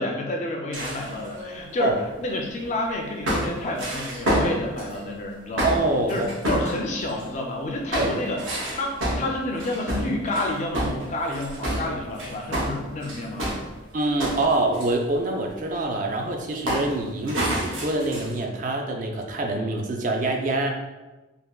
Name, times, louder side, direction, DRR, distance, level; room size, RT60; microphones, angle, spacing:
voice 1, 0.0-5.8 6.1-8.4 8.7-13.5, left 1 dB, 35° left, 1 dB, 0.3 m, -29 dB
sound 1, 0.7-2.7 3.3-5.0 5.6-7.4 7.9-13.7 14.0-14.9 16.7-16.9 17.3-18.4, equal, 75° right, 0.7 m, -28 dB
voice 2, 5.6-6.3 7.9-8.1 13.9-20.7, right 2 dB, 40° right, 3 dB, 0.3 m, -25 dB
3.3 x 2.1 x 2.3 m, 1.1 s
head